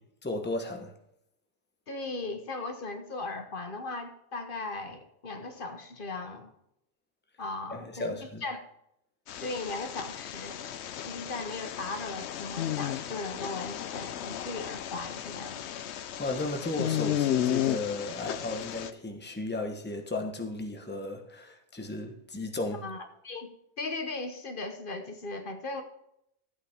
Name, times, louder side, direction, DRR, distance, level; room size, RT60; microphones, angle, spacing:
voice 1, 0.2-0.9 7.7-8.4 16.2-22.8, left 2 dB, 10° left, 1.0 m, -35 dB
voice 2, 1.9-6.5 7.4-8.6 9.4-10.6 11.0-15.6 22.8-25.8, left 3 dB, 50° left, 1.2 m, -38 dB
sound 1, 9.3-18.9, left 11 dB, 80° left, 0.9 m, -34 dB
13.0 x 8.5 x 3.5 m
omnidirectional pair, 1.2 m